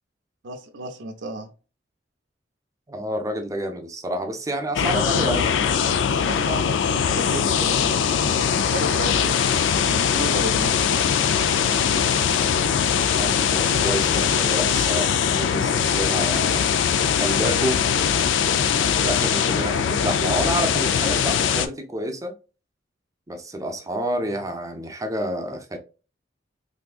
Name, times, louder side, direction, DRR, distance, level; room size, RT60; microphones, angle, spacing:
voice 1, 0.4-1.5 4.8-5.5 6.3-9.4 9.7-11.0, right 1 dB, 80° right, 0.5 m, -33 dB
voice 2, 2.9-5.5 13.0-16.7 17.2-17.8 18.8-22.4 23.3-25.8, right 1 dB, 20° right, 0.5 m, -29 dB
sound 1, 4.7-21.7, left 7 dB, 85° left, 0.4 m, -21 dB
3.5 x 2.6 x 2.3 m
head